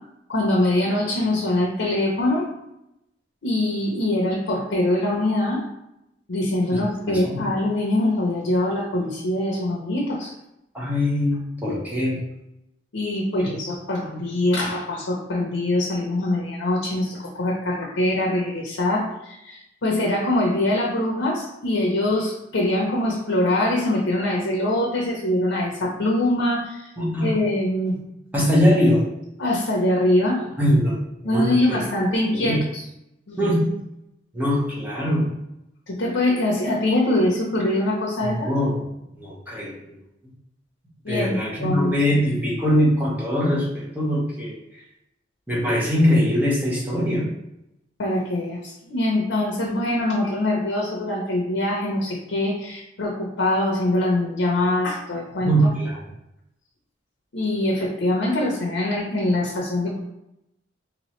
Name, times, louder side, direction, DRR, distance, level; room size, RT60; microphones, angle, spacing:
voice 1, 0.3-2.5 3.4-5.6 6.3-10.3 12.9-26.9 27.2-28.0 29.4-30.4 31.2-32.8 33.3-33.4 35.9-38.5 41.0-41.9 48.0-55.5 57.3-60.0, left 1 dB, 80° left, -2 dB, 0.7 m, -23 dB
voice 2, 7.1-7.4 10.7-12.2 27.0-27.3 28.3-29.0 30.6-31.0 31.2-31.8 32.3-32.6 33.4-33.7 34.3-35.3 38.2-38.8 39.2-39.9 41.1-44.5 45.5-47.3 55.4-56.0, equal, 10° right, -6 dB, 1.0 m, -22 dB
3.5 x 3.0 x 3.0 m, 0.85 s
head